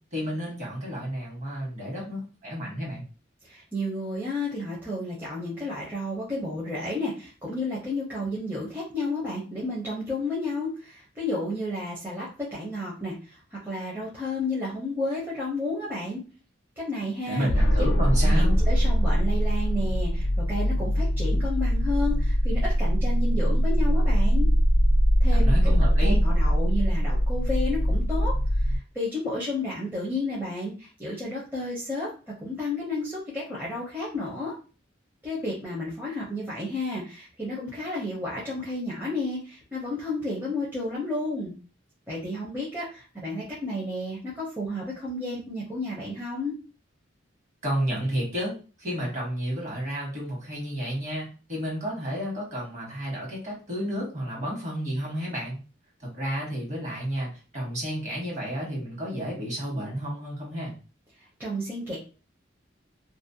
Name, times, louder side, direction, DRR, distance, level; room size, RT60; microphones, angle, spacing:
voice 1, 0.1-3.0 17.3-18.6 25.3-26.1 47.6-55.6 56.0-60.7, equal, 40° right, -3 dB, 1.2 m, -31 dB
voice 2, 3.4-16.2 16.8-17.5 18.2-24.5 25.2-25.7 26.0-32.1 32.4-34.5 35.2-41.5 42.1-46.5 61.4-62.0, left 2 dB, 10° right, -7 dB, 0.6 m, -32 dB
sound 1, 17.5-28.8, equal, 70° left, 0.4 m, -22 dB
2.4 x 2.0 x 2.7 m, 0.35 s
head